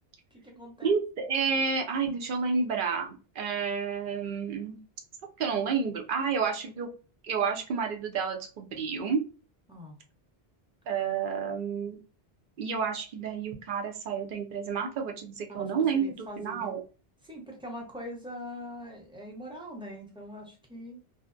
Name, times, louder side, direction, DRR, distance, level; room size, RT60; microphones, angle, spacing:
voice 1, 0.3-1.0 9.7-10.0 15.5-16.7 17.2-21.0, equal, 5° right, -2 dB, 0.6 m, -43 dB
voice 2, 0.8-4.8 5.4-6.9 7.2-9.2 10.9-12.0 12.6-16.8, right 5 dB, 60° right, 3 dB, 0.7 m, -30 dB
2.6 x 2.1 x 2.4 m, 0.35 s
omnidirectional pair, 1.1 m